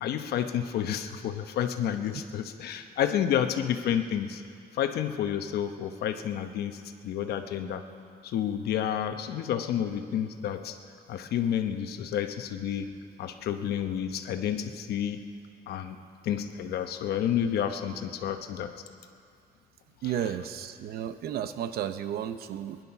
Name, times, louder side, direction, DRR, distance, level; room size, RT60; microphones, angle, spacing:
voice 1, 0.0-4.4 4.8-6.8 7.0-7.8 8.2-10.8 11.1-12.9 13.2-15.2 15.7-16.0 16.2-18.7, left 9 dB, 85° left, 7 dB, 1.0 m, -30 dB
voice 2, 20.0-22.8, right 9 dB, 75° right, 11 dB, 0.8 m, -33 dB
21.0 x 10.5 x 5.8 m, 2.3 s
cardioid pair, 160°, 16 cm